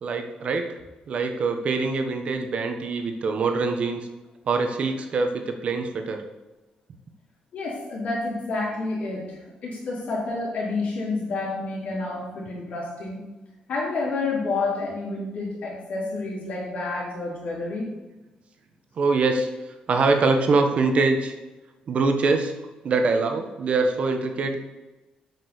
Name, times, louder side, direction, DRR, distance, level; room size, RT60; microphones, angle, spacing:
voice 1, 0.0-0.8 1.1-4.1 4.5-6.2 19.0-19.5 19.9-21.3 21.9-22.5 22.8-24.6, right 3 dB, 50° right, 5 dB, 1.3 m, -23 dB
voice 2, 7.5-13.3 13.7-17.9, left 3 dB, 60° left, -4 dB, 4.3 m, -29 dB
8.4 x 6.5 x 7.1 m, 1.1 s
cardioid pair, 155°, 3 cm